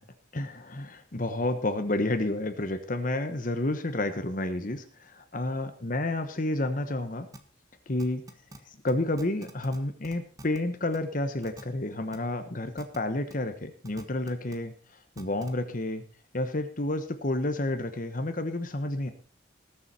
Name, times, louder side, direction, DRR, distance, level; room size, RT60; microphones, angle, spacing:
voice 1, 0.3-7.3 7.9-8.2 8.7-16.0 16.3-19.1, left 2 dB, 45° left, 8 dB, 1.1 m, -30 dB
sound 1, 7.3-7.4 8.0-8.6 8.9-9.0 9.2-9.8 10.0-10.6 10.9-11.0 11.4-11.6 12.1-12.2 12.8-13.0 13.3-13.4 13.8-14.6 15.2-15.5, right 1 dB, 20° right, 1.4 m, -45 dB
19.5 x 7.2 x 4.3 m, 0.42 s
head